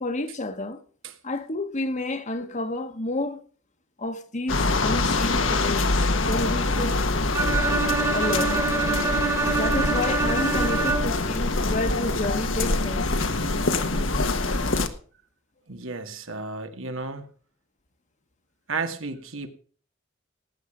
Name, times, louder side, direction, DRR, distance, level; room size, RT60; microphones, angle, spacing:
voice 1, 0.0-0.8 1.2-3.4 4.0-6.0 6.3-7.0 8.1-8.6 9.5-13.1, left 2 dB, 35° left, 1.3 m, -30 dB
sound 1, 4.5-14.9, left 2 dB, 70° left, 1.4 m, -25 dB
Bowed string instrument, 7.3-11.3, right 4 dB, 15° right, 1.5 m, -25 dB
voice 2, 15.7-17.3 18.7-19.5, right 4 dB, 85° right, 2.0 m, -33 dB
18.5 x 9.1 x 5.1 m
head